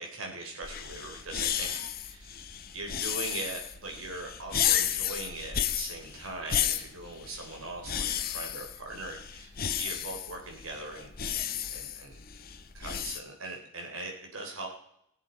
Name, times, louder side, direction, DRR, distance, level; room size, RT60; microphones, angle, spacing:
voice 1, 0.0-1.7 2.0-2.4 2.7-9.5 9.8-11.3 11.7-12.2 12.7-14.7, right 2 dB, 90° right, 1 dB, 3.5 m, -40 dB
sound 1, 0.6-13.2, left 9 dB, 45° left, 0.8 m, -33 dB
20.5 x 7.5 x 4.5 m, 0.74 s
head